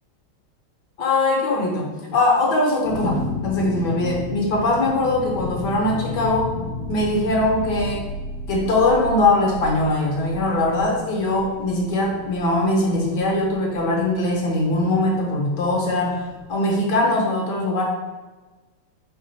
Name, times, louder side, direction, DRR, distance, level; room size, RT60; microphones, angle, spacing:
voice 1, 1.0-6.5 6.9-8.0 8.5-17.8, left 2 dB, 60° left, -2 dB, 1.3 m, -21 dB
sound 1, 2.8-16.5, left 2 dB, 90° left, 1.4 m, -33 dB
4.9 x 2.4 x 4.0 m, 1.3 s
omnidirectional pair, 2.3 m